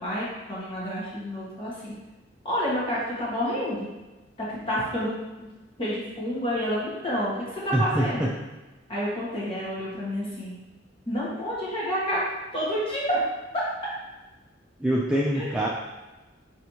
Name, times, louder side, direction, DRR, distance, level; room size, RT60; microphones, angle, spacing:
voice 1, 0.0-1.9 2.4-3.9 4.5-5.1 5.4-5.5 5.8-8.3 8.9-10.5 11.1-12.2 12.5-13.2 15.3-15.5, equal, 30° left, -7 dB, 1.4 m, -29 dB
voice 2, 7.7-8.3 14.8-15.7, right 1 dB, 5° right, -5 dB, 0.3 m, -24 dB
4.5 x 3.2 x 2.8 m, 1.1 s
head